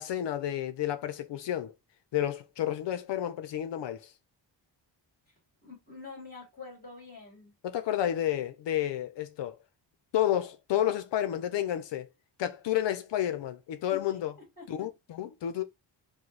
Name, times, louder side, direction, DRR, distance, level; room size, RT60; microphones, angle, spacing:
voice 1, 0.0-1.7 2.1-4.1 7.6-9.6 10.1-12.1 12.4-14.3 14.7-15.6, left 11 dB, 70° left, 0.7 m, -30 dB
voice 2, 5.6-7.5 13.9-14.2 14.6-14.9, left 4 dB, 20° left, 2.8 m, -46 dB
4.9 x 2.3 x 4.0 m
wide cardioid pair, 160°, 44 cm